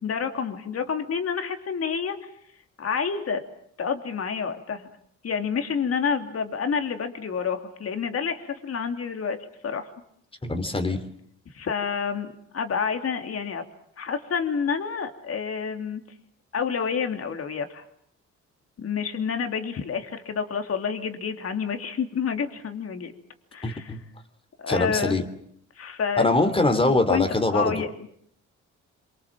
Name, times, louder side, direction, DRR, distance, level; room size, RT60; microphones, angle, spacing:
voice 1, 0.0-2.3 2.8-3.4 3.8-4.9 5.2-9.4 9.6-9.9 11.5-13.6 14.0-16.0 16.5-17.8 18.8-23.1 23.5-24.0 24.6-25.2 25.8-28.1, left 6 dB, 50° left, 6 dB, 3.2 m, -29 dB
voice 2, 10.4-11.0 23.6-24.0 24.7-25.2 26.2-27.7, left 2 dB, 20° left, 8 dB, 3.3 m, -23 dB
26.0 x 24.5 x 7.6 m, 0.69 s
cardioid pair, 90°, 30 cm